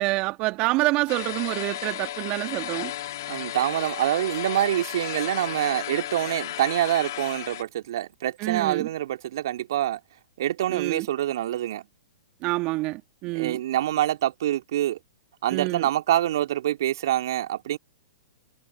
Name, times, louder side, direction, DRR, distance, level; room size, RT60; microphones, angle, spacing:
voice 1, 0.0-2.9 8.4-8.9 10.7-11.1 12.4-13.6 15.5-15.8, right 22 dB, 40° right, 1.8 m, -27 dB
sound 1, 1.1-7.6, left 14 dB, 55° left, 3.0 m, -34 dB
voice 2, 3.3-10.0 10.4-11.9 13.3-15.0 15.4-17.8, right 12 dB, 60° right, 2.4 m, -26 dB
figure-of-eight pair, 110°, 2 cm